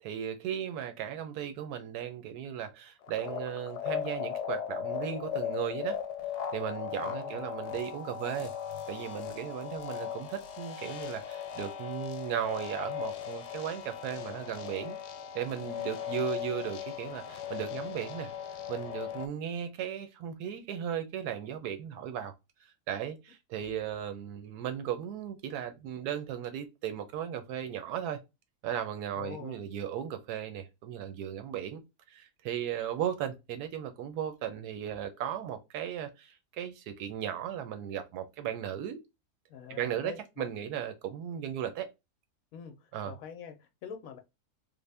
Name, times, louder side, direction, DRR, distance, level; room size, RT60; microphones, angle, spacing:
voice 1, 0.0-6.0 6.5-8.5 8.9-15.0 15.3-18.3 18.7-22.3 22.9-28.2 28.6-31.8 32.1-39.0 39.7-41.9 42.9-43.1, right 9 dB, 80° right, 1.2 m, -36 dB
sound 1, 3.0-19.3, left 9 dB, 90° left, 1.1 m, -38 dB
voice 2, 7.0-7.5 29.2-29.6 39.5-40.5 42.5-44.2, left 7 dB, 70° left, 0.9 m, -45 dB
3.5 x 2.1 x 3.3 m
omnidirectional pair, 1.7 m